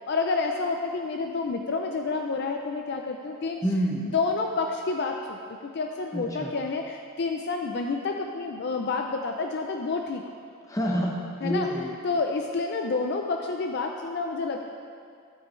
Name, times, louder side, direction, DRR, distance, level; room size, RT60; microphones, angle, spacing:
voice 1, 0.1-3.6 4.0-5.4 5.7-10.2 11.4-11.7 12.0-14.6, left 4 dB, 50° left, 3 dB, 0.4 m, -29 dB
voice 2, 3.6-4.1 6.1-6.5 10.7-11.9, equal, 15° left, -2 dB, 1.0 m, -28 dB
12.0 x 8.6 x 3.1 m, 2.2 s
head